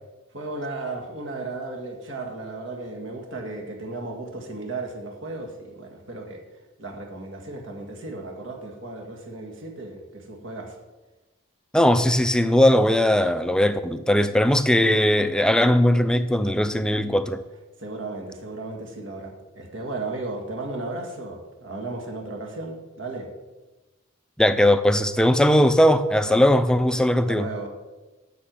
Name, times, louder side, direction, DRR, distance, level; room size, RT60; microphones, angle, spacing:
voice 1, 0.3-6.4 6.8-10.8 17.8-23.3 26.2-26.4 27.3-27.7, right 2 dB, 65° right, 1.9 m, -35 dB
voice 2, 11.7-17.4 24.4-27.5, left 1 dB, 5° left, 0.4 m, -19 dB
8.1 x 6.5 x 7.7 m
head